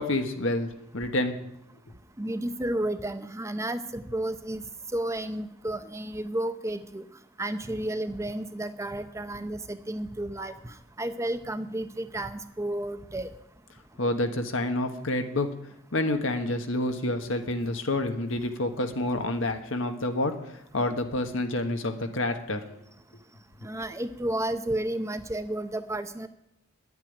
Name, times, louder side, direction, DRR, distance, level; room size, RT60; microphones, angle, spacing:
voice 1, 0.0-1.4 14.0-15.5 15.9-22.8, left 1 dB, 70° left, 6 dB, 1.5 m, -28 dB
voice 2, 2.2-4.6 4.9-7.0 7.4-13.3 23.6-26.3, right 1 dB, 15° right, 9 dB, 0.7 m, -32 dB
10.5 x 8.8 x 10.0 m, 0.78 s
head